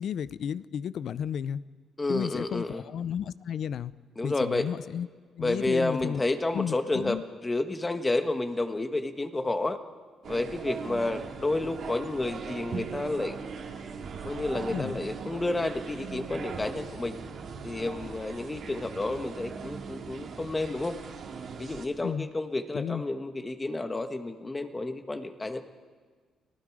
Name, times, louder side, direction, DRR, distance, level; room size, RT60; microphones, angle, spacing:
voice 1, 0.0-1.6 2.1-3.9 4.2-5.1 5.4-6.2 6.5-7.2 14.7-15.0 22.0-22.3 22.7-23.0, left 8 dB, 65° left, 18 dB, 0.5 m, -33 dB
voice 2, 2.0-2.8 4.2-4.7 5.4-9.8 10.2-13.3 14.2-17.2 17.6-20.9 21.6-25.6, left 2 dB, 20° left, 8 dB, 1.5 m, -30 dB
sound 1, 10.2-21.9, right 5 dB, 65° right, 2.5 m, -39 dB
29.5 x 18.5 x 5.0 m, 1.5 s
cardioid pair, 90°, 0 cm